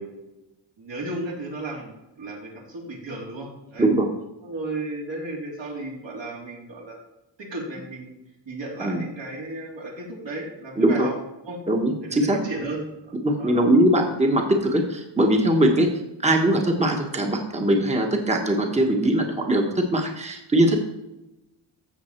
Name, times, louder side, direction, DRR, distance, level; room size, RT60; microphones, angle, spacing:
voice 1, 0.8-3.9 4.4-7.0 7.4-8.1 8.5-11.1 11.5-11.6 12.0-13.7, right 2 dB, 70° right, -2 dB, 3.6 m, -34 dB
voice 2, 10.8-11.1 11.7-12.4 13.2-15.9 16.2-20.8, right 1 dB, 15° right, 3 dB, 1.2 m, -21 dB
14.5 x 7.0 x 4.5 m, 0.94 s
wide cardioid pair, 165°, 46 cm